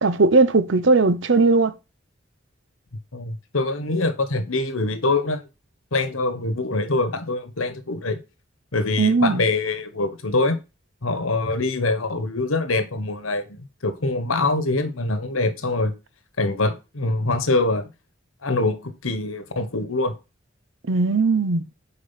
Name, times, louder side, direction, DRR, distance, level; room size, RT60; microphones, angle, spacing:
voice 1, 0.0-1.7 9.0-9.4 20.9-21.6, right 3 dB, 65° right, 0.7 m, -18 dB
voice 2, 3.1-5.4 5.9-8.2 8.7-10.6 11.0-15.9 16.4-17.9 18.4-20.1, left 2 dB, 80° left, 1.3 m, -24 dB
6.9 x 5.2 x 5.7 m
head